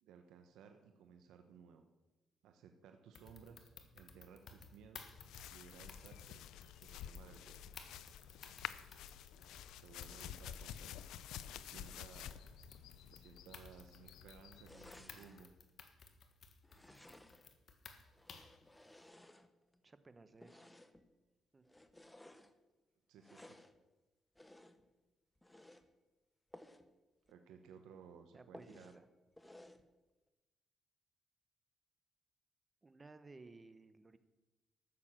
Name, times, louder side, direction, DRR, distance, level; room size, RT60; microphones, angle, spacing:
voice 1, 0.0-1.8 2.4-5.1 5.5-6.4 6.8-7.6 9.8-11.0 11.4-12.4 13.1-15.5 23.1-23.6 27.3-28.9, right 7 dB, 85° right, 5 dB, 1.0 m, -59 dB
sound 1, 3.1-18.6, left 5 dB, 55° left, 1.6 m, -58 dB
sound 2, 5.2-15.1, left 10 dB, 90° left, 0.5 m, -50 dB
Glass on wood table sliding, 14.6-15.5 16.6-17.6 18.1-19.8 20.4-21.1 21.6-22.5 23.2-23.8 24.3-24.9 25.4-25.9 26.5-26.9 27.3-27.4 27.7-27.8 28.5-29.0 29.4-29.9, left 1 dB, 10° left, 1.0 m, -59 dB
voice 2, 19.8-20.7 21.5-21.6 28.3-29.1 32.8-34.2, right 3 dB, 25° right, 12 dB, 1.0 m, -58 dB
13.5 x 6.8 x 7.5 m, 1.1 s
cardioid pair, 90°, 0 cm